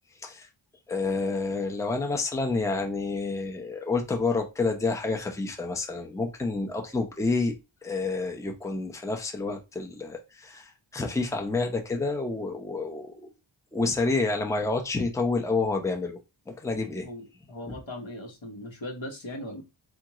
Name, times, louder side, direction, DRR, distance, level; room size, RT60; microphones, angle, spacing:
voice 1, 0.9-7.5 7.8-13.3 13.7-16.2 16.5-17.1 17.6-17.8, left 3 dB, 5° left, 2 dB, 0.6 m, -29 dB
voice 2, 17.0-19.6, left 1 dB, 65° left, 1 dB, 1.1 m, -39 dB
3.6 x 2.4 x 2.9 m, 0.25 s
wide cardioid pair, 55°, 49 cm